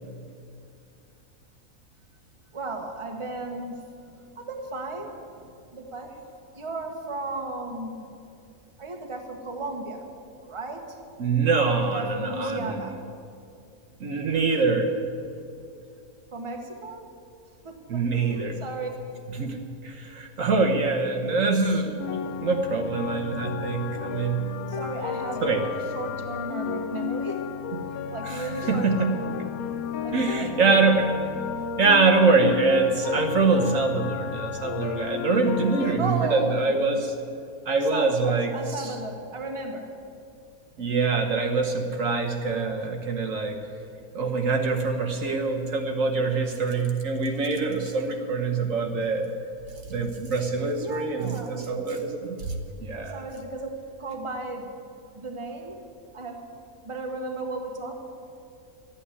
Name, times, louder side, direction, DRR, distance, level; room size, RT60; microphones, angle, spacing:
voice 1, 2.5-3.8 4.3-6.2 6.5-8.1 8.8-10.1 10.4-11.0 11.7-13.0 16.3-17.1 17.6-18.9 24.7-27.5 28.1-29.3 30.0-30.6 36.0-37.0 37.7-39.9 50.6-51.6 53.1-53.7 54.0-54.7 55.1-55.8 56.1-56.4 56.8-58.2, right 2 dB, 20° right, 3 dB, 1.3 m, -35 dB
voice 2, 11.2-12.7 14.0-14.9 17.9-18.6 19.4-19.6 19.8-22.2 22.4-24.5 25.4-25.6 27.7-27.8 28.2-29.1 30.1-31.2 31.8-37.1 37.7-38.5 40.8-43.6 44.1-49.3 49.9-52.6 52.8-53.2, right 4 dB, 65° right, 3 dB, 1.4 m, -24 dB
sound 1, 22.0-36.0, left 7 dB, 75° left, 1.3 m, -33 dB
12.5 x 8.7 x 9.6 m, 2.5 s
omnidirectional pair, 1.5 m